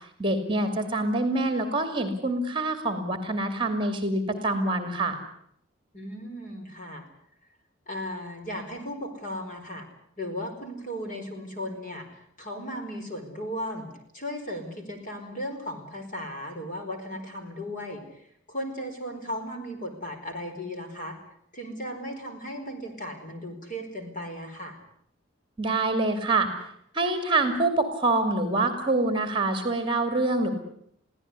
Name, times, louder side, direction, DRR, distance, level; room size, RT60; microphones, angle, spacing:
voice 1, 0.2-5.2 25.6-26.5 26.9-30.5, right 2 dB, 25° right, 8 dB, 2.5 m, -25 dB
voice 2, 5.9-7.0 7.9-9.8 10.2-13.9 14.1-21.2 21.5-24.8, equal, 40° left, 4 dB, 4.8 m, -36 dB
23.5 x 16.5 x 9.7 m, 0.72 s
head